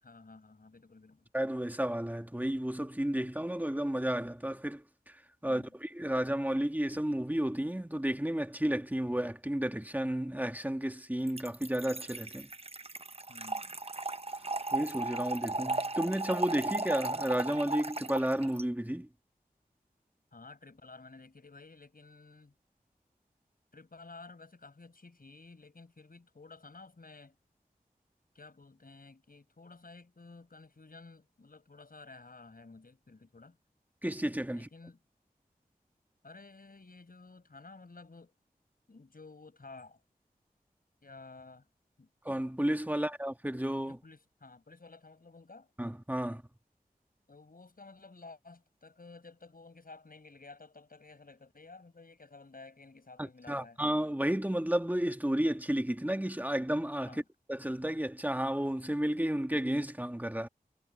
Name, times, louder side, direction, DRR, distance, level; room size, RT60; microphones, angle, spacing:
voice 1, 0.0-1.3 5.4-5.7 13.3-13.8 20.3-22.5 23.7-27.4 28.3-33.6 34.5-35.0 36.2-38.4 38.9-40.0 41.0-41.7 42.0-42.1 42.9-43.1 43.9-45.7 47.3-53.8 57.0-57.2, left 3 dB, 65° left, 5.7 m, -53 dB
voice 2, 1.3-12.5 14.7-19.1 34.0-34.7 42.2-44.0 45.8-46.4 53.2-57.2 57.5-60.5, right 1 dB, 10° right, 1.7 m, -32 dB
Trickle dribble / Fill (with liquid), 11.3-18.6, right 2 dB, 40° right, 1.0 m, -36 dB
wide cardioid pair, 65°, 16 cm